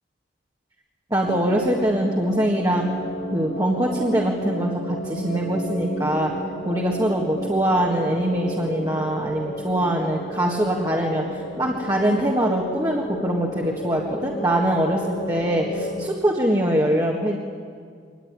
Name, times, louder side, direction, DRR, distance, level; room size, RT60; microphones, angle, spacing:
voice 1, 1.1-2.9 3.3-6.3 6.7-17.4, right 1 dB, 20° right, -2 dB, 1.8 m, -23 dB
sound 1, 1.2-16.1, equal, 45° left, 2.5 m, -32 dB
23.5 x 19.5 x 9.7 m, 2.1 s
head